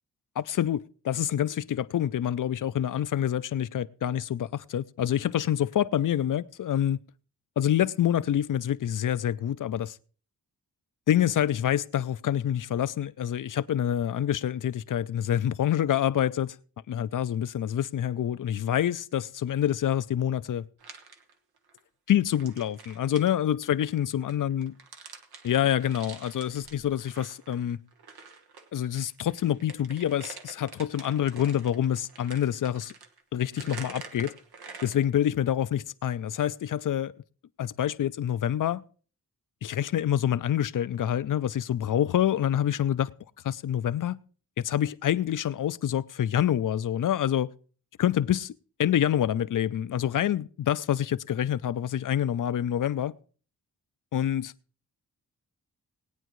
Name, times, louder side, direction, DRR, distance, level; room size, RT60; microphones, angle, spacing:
voice 1, 0.4-7.0 7.6-10.0 11.1-16.6 16.9-20.6 22.1-24.7 25.4-27.8 28.7-32.9 33.3-34.3 34.8-37.1 37.6-38.8 39.6-43.1 43.4-44.2 44.6-47.5 48.0-48.5 48.8-53.1 54.1-54.5, left 10 dB, 55° left, 0.5 m, -27 dB
sound 1, 20.8-21.8 22.2-28.7 29.0-35.0, right 5 dB, 85° right, 1.3 m, -47 dB
19.5 x 9.1 x 3.1 m
wide cardioid pair, 100°, 37 cm